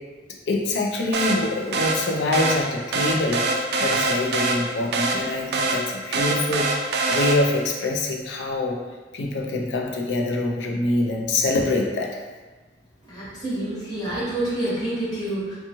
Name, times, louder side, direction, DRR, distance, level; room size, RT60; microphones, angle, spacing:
voice 1, 0.5-8.8 9.1-12.1, left 2 dB, 75° left, 0 dB, 0.4 m, -25 dB
sound 1, 1.1-7.7, right 2 dB, 65° right, 0.3 m, -25 dB
voice 2, 13.0-15.6, right 1 dB, 20° left, -10 dB, 1.1 m, -28 dB
2.6 x 2.3 x 2.9 m, 1.3 s
head